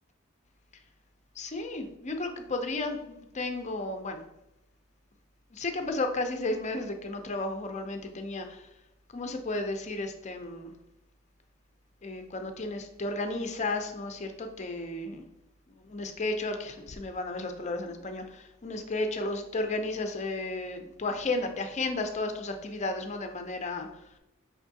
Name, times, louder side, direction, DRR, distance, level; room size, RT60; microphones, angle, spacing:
voice 1, 1.4-4.2 5.5-8.6 9.1-10.7 12.0-15.2 15.9-23.9, left 2 dB, 35° left, 6 dB, 0.5 m, -33 dB
4.9 x 3.5 x 2.7 m, 0.88 s
head